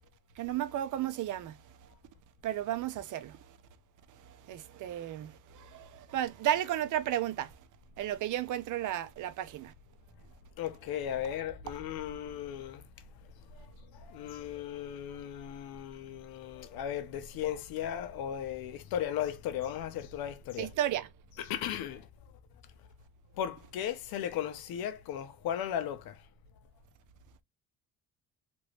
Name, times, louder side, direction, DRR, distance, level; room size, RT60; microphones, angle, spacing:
voice 1, 0.4-1.6 2.4-3.4 4.5-7.5 8.0-9.7 20.6-21.1, right 12 dB, 60° right, 0.6 m, -33 dB
voice 2, 10.6-12.8 13.5-13.7 14.0-20.7 21.4-22.1 23.4-26.2, left 10 dB, 90° left, 0.8 m, -36 dB
3.0 x 2.6 x 3.0 m
cardioid pair, 130°, 35 cm